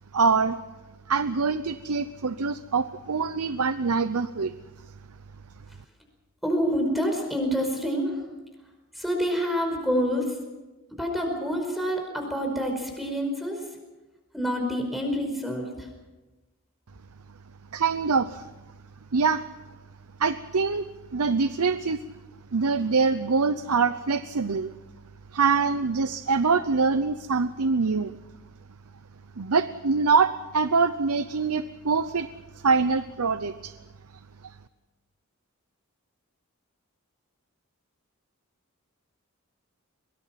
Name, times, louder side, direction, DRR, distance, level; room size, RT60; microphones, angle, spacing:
voice 1, 0.1-0.6 1.1-4.5 17.7-18.5 19.1-19.4 20.2-20.9 21.1-22.0 22.5-24.7 25.3-28.2 29.4-32.3 32.5-33.7 34.4-34.6, right 4 dB, 85° right, 12 dB, 0.7 m, -24 dB
voice 2, 6.4-8.2 8.9-10.3 11.0-13.6 14.3-15.9, equal, ahead, 2 dB, 5.0 m, -27 dB
23.5 x 22.5 x 5.9 m, 1.1 s
head